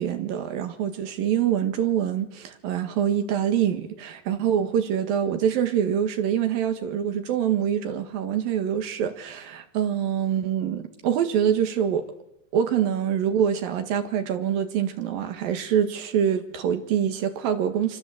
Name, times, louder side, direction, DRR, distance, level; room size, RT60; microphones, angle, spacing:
voice 1, 0.0-12.1 12.5-18.0, right 9 dB, 60° right, 3.2 m, -25 dB
28.5 x 25.0 x 7.9 m
omnidirectional pair, 5.0 m